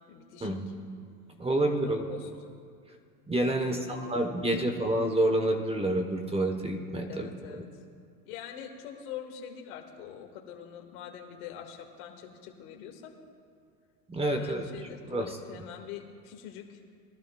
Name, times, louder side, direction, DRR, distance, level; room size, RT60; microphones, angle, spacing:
voice 1, 0.1-0.5 1.8-2.3 3.7-4.8 7.1-7.6 8.3-13.1 14.3-16.8, left 9 dB, 65° left, 2 dB, 2.1 m, -44 dB
voice 2, 1.4-2.1 3.3-7.3 14.1-14.6 15.1-15.7, right 1 dB, 10° right, 4 dB, 1.1 m, -28 dB
22.5 x 12.0 x 2.3 m, 2.2 s
hypercardioid pair, 95°, 47 cm